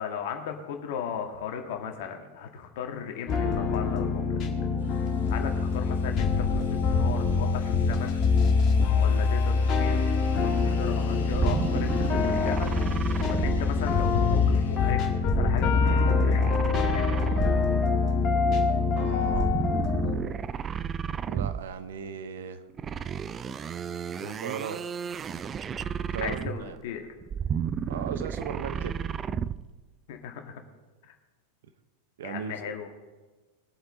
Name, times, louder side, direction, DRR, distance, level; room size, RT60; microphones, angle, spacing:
voice 1, 0.0-4.4 5.3-8.2 8.9-10.2 10.4-12.7 13.3-17.6 24.2-24.4 26.2-27.1 30.1-30.6 31.1-31.2 32.2-32.9, left 7 dB, 50° left, 4 dB, 1.8 m, -37 dB
sound 1, 3.3-20.2, left 4 dB, 30° left, 1.9 m, -25 dB
sound 2, 4.8-14.9, left 5 dB, 70° left, 2.4 m, -47 dB
sound 3, 11.3-14.3 15.2-17.9 19.2-21.8 22.8-26.8 27.2-29.7, right 7 dB, 25° right, 0.4 m, -32 dB
voice 2, 18.9-19.5 21.3-22.6 24.2-24.8 26.1-26.8 27.9-28.9 32.2-32.8, right 7 dB, 60° right, 10 dB, 1.0 m, -37 dB
21.0 x 7.9 x 3.9 m, 1.3 s
figure-of-eight pair, 90°, 0 cm